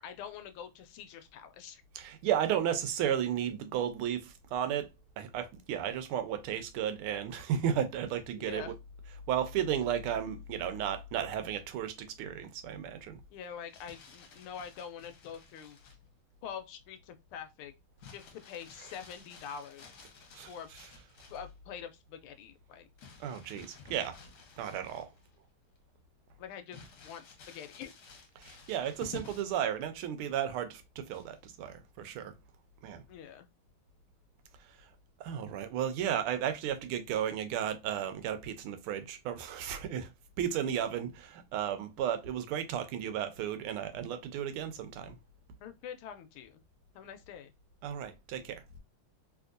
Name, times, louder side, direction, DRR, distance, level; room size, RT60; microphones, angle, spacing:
voice 1, 0.0-1.8 8.4-8.7 13.3-15.8 16.4-17.7 18.1-19.9 20.5-20.7 21.3-22.9 26.4-27.9 33.1-33.5 45.6-46.6 46.9-47.5, left 8 dB, 85° left, 1.4 m, -45 dB
voice 2, 1.9-8.7 9.3-13.2 20.3-20.5 20.7-20.9 23.2-24.2 24.6-25.1 28.4-32.4 32.8-33.0 34.7-34.9 35.2-40.1 40.4-45.2 47.8-48.6, right 9 dB, 85° right, 1.5 m, -34 dB
Crumpling crinkling, 13.5-16.1 18.0-21.5 23.0-25.3 25.8-25.9 26.7-29.6 31.1-31.5, left 5 dB, 60° left, 1.2 m, -52 dB
3.4 x 2.9 x 2.4 m
omnidirectional pair, 2.4 m